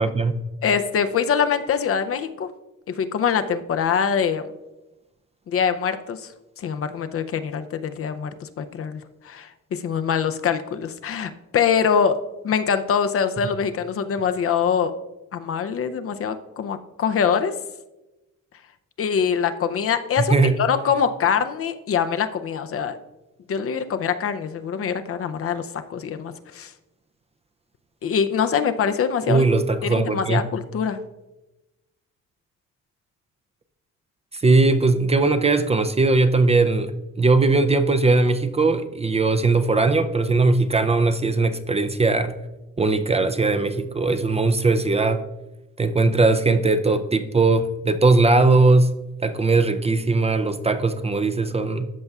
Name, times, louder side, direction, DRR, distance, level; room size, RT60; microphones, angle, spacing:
voice 1, 0.0-0.4 20.2-20.6 29.3-30.4 34.3-42.3 42.8-45.2 45.8-48.9 49.2-51.9, right 3 dB, 20° right, 9 dB, 0.4 m, -19 dB
voice 2, 0.6-2.5 3.0-4.4 5.5-6.3 6.6-12.2 12.4-14.9 15.3-17.5 19.0-23.0 23.5-26.7 28.0-29.4 29.8-31.0, left 7 dB, 50° left, 9 dB, 0.5 m, -24 dB
13.5 x 5.4 x 2.3 m, 1.0 s
cardioid pair, 90°, 30 cm